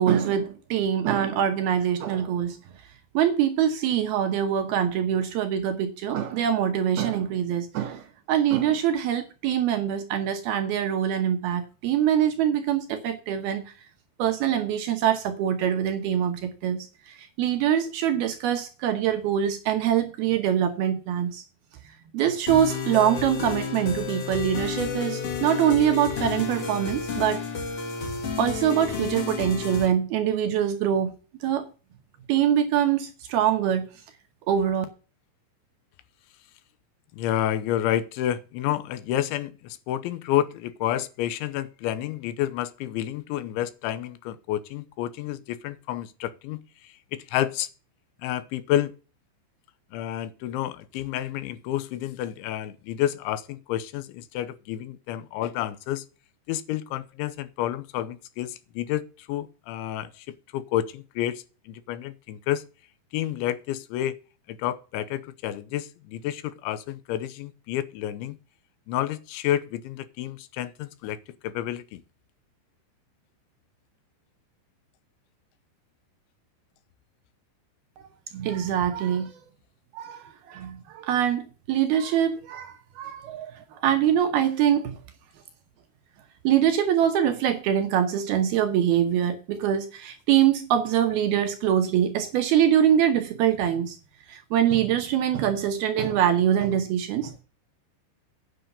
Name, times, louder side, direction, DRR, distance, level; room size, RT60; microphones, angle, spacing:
voice 1, 0.0-2.6 3.1-13.7 14.2-21.4 22.1-27.4 28.4-31.1 31.4-31.7 32.3-33.9 34.5-34.9 78.3-79.4 79.9-85.0 86.4-94.0 94.3-97.4, right 9 dB, 70° right, 2.5 m, -24 dB
sound 1, 22.5-29.9, left 5 dB, 50° left, 2.0 m, -31 dB
voice 2, 37.1-47.7 48.2-48.9 49.9-56.1 56.5-62.6 63.1-64.2 64.5-68.4 68.9-72.0, left 12 dB, 85° left, 3.2 m, -30 dB
9.6 x 6.9 x 6.8 m
omnidirectional pair, 5.4 m